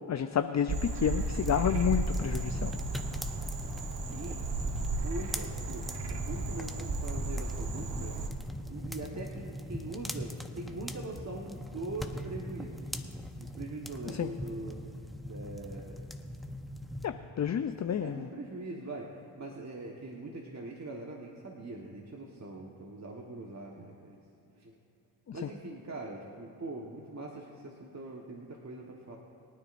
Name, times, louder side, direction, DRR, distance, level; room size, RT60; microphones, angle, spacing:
voice 1, 0.1-2.7 14.2-14.3 17.0-18.3, left 8 dB, 35° left, 9 dB, 0.5 m, -30 dB
Frog, 0.7-8.3, right 3 dB, 60° right, 1.3 m, -34 dB
sound 1, 1.2-17.1, left 1 dB, ahead, 0.9 m, -41 dB
voice 2, 4.0-4.4 5.0-12.9 13.4-14.8 15.2-16.0 18.0-24.2 24.6-24.7 25.3-29.2, right 2 dB, 35° right, -1 dB, 1.4 m, -42 dB
23.0 x 9.5 x 2.6 m, 2.9 s
supercardioid pair, 45°, 48 cm